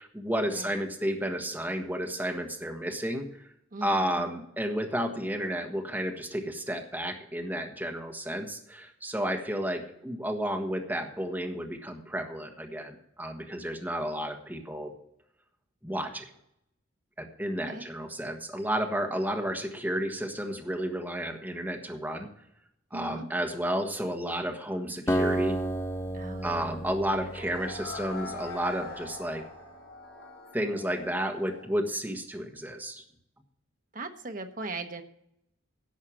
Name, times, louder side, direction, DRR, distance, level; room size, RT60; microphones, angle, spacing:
voice 1, 0.0-3.5 3.8-14.9 15.8-16.2 17.2-22.3 22.9-25.6 26.4-29.4 30.5-33.0, equal, 10° right, 2 dB, 1.3 m, -32 dB
voice 2, 3.7-4.2 17.7-17.9 22.9-23.3 26.1-26.5 27.1-27.3 33.9-35.0, right 3 dB, 40° right, 6 dB, 1.1 m, -39 dB
Acoustic guitar, 25.1-28.7, right 1 dB, 15° left, 0.6 m, -32 dB
sound 1, 26.4-31.7, left 3 dB, 80° left, 4.5 m, -43 dB
11.0 x 6.5 x 7.3 m, 0.75 s
head